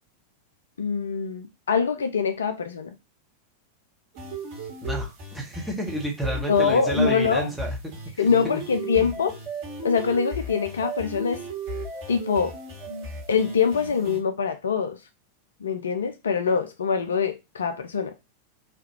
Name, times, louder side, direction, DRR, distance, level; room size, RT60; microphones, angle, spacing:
voice 1, 0.8-2.9 6.5-7.5 8.2-9.4 9.8-11.4 12.1-12.5 13.3-15.0 15.6-18.1, left 6 dB, 70° left, 0.3 m, -24 dB
sound 1, 4.1-14.2, right 1 dB, 45° right, 1.1 m, -35 dB
voice 2, 4.8-7.8 8.1-8.2 8.5-9.0, right 1 dB, ahead, 1.0 m, -31 dB
3.2 x 2.3 x 2.8 m
figure-of-eight pair, 90°, 0 cm